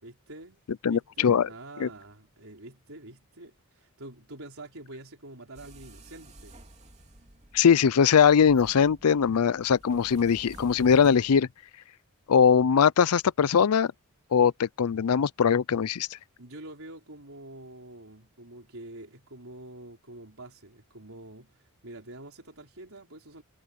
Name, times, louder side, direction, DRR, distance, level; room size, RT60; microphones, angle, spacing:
voice 1, 0.0-0.6 0.9-6.5 16.4-23.4, right 2 dB, 65° right, 5.1 m, -46 dB
voice 2, 0.8-1.5 1.8-1.9 7.5-11.5 12.3-13.9 14.3-16.1, left 7 dB, 80° left, 0.5 m, -21 dB
sound 1, 5.5-11.4, right 1 dB, 30° right, 2.8 m, -51 dB
head